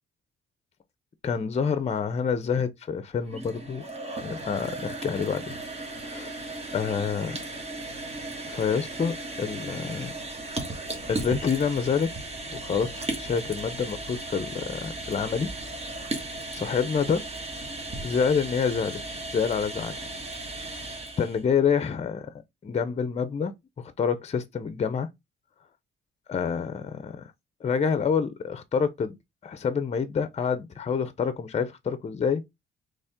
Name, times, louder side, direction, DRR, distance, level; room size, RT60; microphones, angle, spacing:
voice 1, 1.2-3.9 4.2-5.5 6.0-6.3 6.7-7.4 8.5-10.1 11.1-12.1 12.5-15.5 16.5-17.2 18.0-19.0 19.3-20.1 21.2-22.3 22.6-25.1 26.3-27.3 27.6-29.2 29.4-32.4, left 6 dB, 35° left, 0.6 m, -27 dB
sound 1, 3.2-21.4, right 2 dB, 30° right, 1.6 m, -36 dB
4.1 x 3.3 x 3.6 m
cardioid pair, 90°, 20 cm